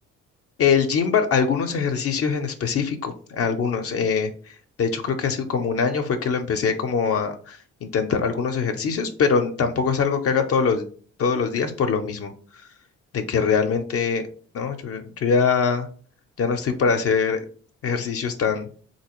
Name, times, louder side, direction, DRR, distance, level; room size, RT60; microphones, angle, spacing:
voice 1, 0.6-4.3 4.8-10.9 11.2-12.3 13.1-14.3 14.5-15.9 16.4-17.4 17.8-18.7, left 6 dB, 50° left, 5 dB, 0.5 m, -23 dB
3.2 x 2.6 x 2.9 m, 0.44 s
cardioid pair, 90°, 30 cm